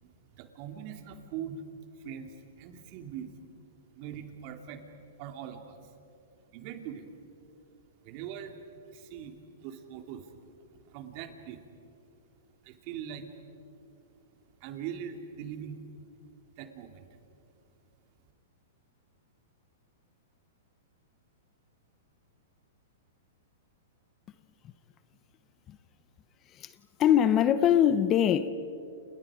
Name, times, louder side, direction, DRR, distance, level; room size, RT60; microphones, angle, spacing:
voice 1, 0.0-1.6 1.9-3.3 3.9-4.8 5.2-5.9 6.5-7.1 8.0-8.5 8.9-10.4 10.8-11.6 12.6-13.3 14.6-15.8 16.6-17.2, right 8 dB, 45° right, 2.8 m, -42 dB
voice 2, 27.0-28.5, left 10 dB, 30° left, 0.9 m, -22 dB
29.5 x 29.5 x 5.1 m
hypercardioid pair, 135°, 0 cm